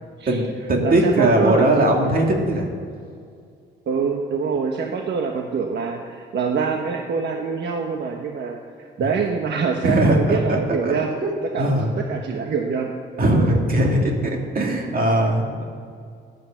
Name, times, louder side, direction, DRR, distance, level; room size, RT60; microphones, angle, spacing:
voice 1, 0.3-2.7 9.8-10.9 11.2-11.3 11.6-11.9 13.2-14.1 14.5-15.6, right 1 dB, 45° right, 1 dB, 2.3 m, -19 dB
voice 2, 0.8-1.8 3.9-11.1 11.4-12.9, right 5 dB, 60° right, 3 dB, 1.2 m, -25 dB
12.5 x 9.6 x 7.4 m, 2.3 s
cardioid pair, 90°, 20 cm